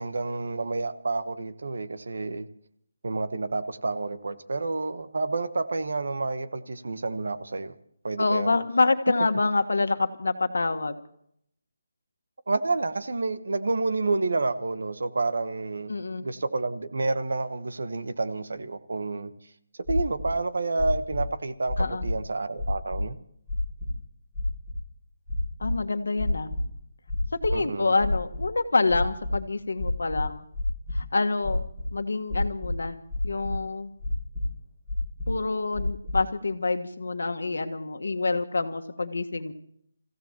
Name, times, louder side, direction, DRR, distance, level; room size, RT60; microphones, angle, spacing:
voice 1, 0.0-2.5 3.0-7.7 8.0-8.6 12.5-19.3 19.9-23.2 27.5-27.9, right 3 dB, 60° right, 11 dB, 1.1 m, -29 dB
voice 2, 8.2-11.0 15.9-16.2 21.8-22.0 25.6-26.5 27.4-30.4 30.9-31.6 31.9-33.0 33.2-33.9 35.3-39.5, left 3 dB, 85° left, 7 dB, 1.4 m, -26 dB
sound 1, 19.8-20.3 20.8-21.2 21.7-22.2 22.6-23.0 23.5-23.9 24.3-24.7 25.3-25.7 26.2-26.7 27.1-27.5 28.0-28.5 28.9-29.3 29.8-31.0 31.4-31.9 32.3-32.8 33.1-33.6 34.0-34.4 34.9-35.4 35.7-36.2, left 1 dB, ahead, 6.7 m, -29 dB
29.0 x 15.5 x 3.0 m, 0.68 s
hypercardioid pair, 180°, 0 cm